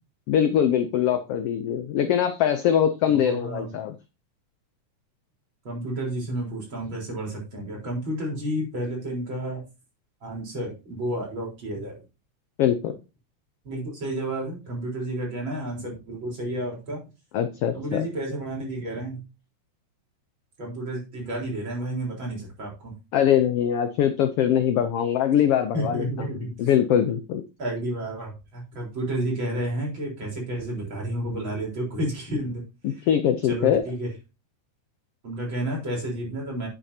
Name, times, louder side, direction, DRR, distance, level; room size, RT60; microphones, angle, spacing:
voice 1, 0.3-3.9 12.6-12.9 17.3-18.1 23.1-26.3 26.6-27.4 32.8-33.8, left 9 dB, 75° left, 9 dB, 1.4 m, -22 dB
voice 2, 3.0-3.7 5.6-9.6 10.2-12.0 13.6-17.0 17.7-19.2 20.6-22.9 25.7-26.5 27.6-32.6 33.4-34.1 35.2-36.7, right 1 dB, 40° right, -3 dB, 4.8 m, -31 dB
9.5 x 8.8 x 2.8 m, 0.28 s
omnidirectional pair, 3.5 m